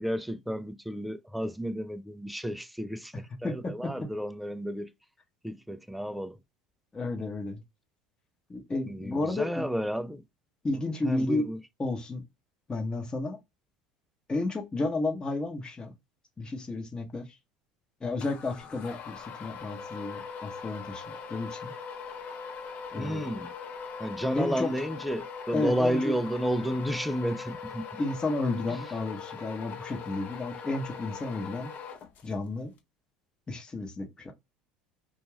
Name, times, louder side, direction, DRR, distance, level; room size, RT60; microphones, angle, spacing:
voice 1, 0.0-4.9 5.4-6.4 8.9-10.2 11.0-11.6 23.0-23.5 24.0-27.9 28.7-28.8, equal, ahead, 0.4 m, -32 dB
voice 2, 3.4-4.1 6.9-7.6 8.5-9.7 10.6-11.5 11.8-12.2 12.7-13.4 14.3-15.9 16.4-17.2 18.0-21.7 22.9-23.3 24.3-24.7 25.5-26.1 28.0-31.7 32.2-32.7 33.5-34.3, left 2 dB, 20° left, 0.9 m, -32 dB
sound 1, 18.2-32.5, left 6 dB, 45° left, 0.8 m, -41 dB
2.5 x 2.3 x 3.1 m
hypercardioid pair, 85°, 4 cm